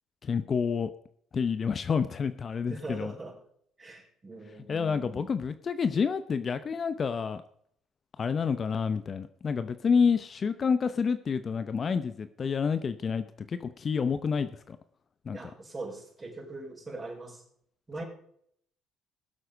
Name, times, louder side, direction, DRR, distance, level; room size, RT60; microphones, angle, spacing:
voice 1, 0.2-0.9 1.3-3.1 4.7-7.4 8.2-14.8 15.3-15.5, left 6 dB, 40° left, 12 dB, 0.7 m, -29 dB
voice 2, 2.7-3.3 3.8-5.3 15.3-17.4 17.9-18.0, right 2 dB, 25° right, -1 dB, 5.4 m, -41 dB
17.5 x 7.7 x 5.1 m, 0.66 s
supercardioid pair, 75°, 0 cm